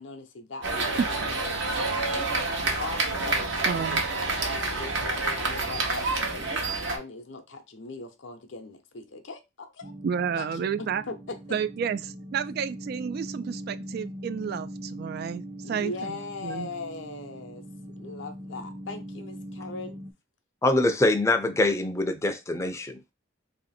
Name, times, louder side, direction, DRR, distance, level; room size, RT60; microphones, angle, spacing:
voice 1, 0.0-2.3 2.8-9.9 10.4-11.6 15.6-17.6 18.0-20.0, left 3 dB, 70° left, 0.7 m, -40 dB
sound 1, 0.6-7.0, right 3 dB, 70° right, 1.0 m, -28 dB
voice 2, 3.6-4.0 10.0-11.0 11.5-16.7, right 7 dB, 55° right, 0.3 m, -31 dB
sound 2, 9.8-20.1, right 1 dB, 25° right, 0.7 m, -41 dB
voice 3, 20.6-23.0, left 2 dB, 15° left, 0.5 m, -24 dB
3.0 x 2.8 x 4.2 m
head